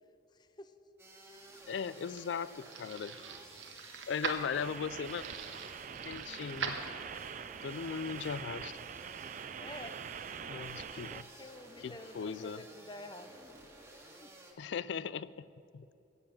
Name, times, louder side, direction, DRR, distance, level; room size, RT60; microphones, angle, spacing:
voice 1, 0.3-0.7 7.9-8.0 9.6-10.0 10.4-13.3 14.0-14.3, left 2 dB, 25° left, 10 dB, 0.7 m, -50 dB
sound 1, 1.0-14.5, right 1 dB, 15° right, 1.8 m, -54 dB
sound 2, 1.4-7.4, right 5 dB, 85° right, 1.4 m, -43 dB
voice 2, 1.7-3.1 4.1-5.2 6.0-6.8 7.6-8.8 10.5-11.2 11.8-12.6 14.6-15.4 15.7-15.9, left 6 dB, 65° left, 18 dB, 0.3 m, -38 dB
sound 3, 4.5-11.2, right 7 dB, 40° right, 0.4 m, -44 dB
16.0 x 7.7 x 8.7 m, 2.9 s
head